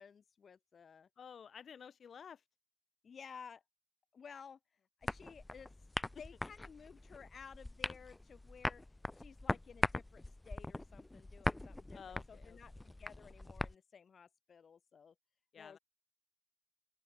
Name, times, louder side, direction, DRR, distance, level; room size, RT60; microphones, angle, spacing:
voice 1, 0.0-1.1 3.0-3.6 4.1-4.6 5.0-5.7 6.2-8.8 9.1-15.1 15.6-15.8, left 6 dB, 60° left, 2.1 m, -55 dB
voice 2, 1.2-2.4 11.9-12.6 15.5-15.8, left 7 dB, 75° left, 1.8 m, -52 dB
sound 1, 5.0-13.7, left 2 dB, 15° left, 1.4 m, -41 dB
open air
wide cardioid pair, 175°, 0 cm